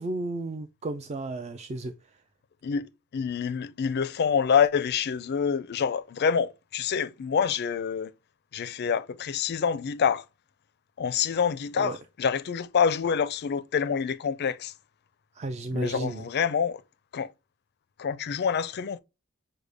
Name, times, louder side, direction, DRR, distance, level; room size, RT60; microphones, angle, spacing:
voice 1, 0.0-1.9 11.8-12.0 15.4-16.3, right 2 dB, 30° right, 0.3 m, -33 dB
voice 2, 2.6-8.1 8.5-10.2 11.0-14.7 15.7-16.8 17.1-17.3 18.0-19.0, left 7 dB, 50° left, 0.4 m, -27 dB
6.4 x 2.1 x 3.4 m
head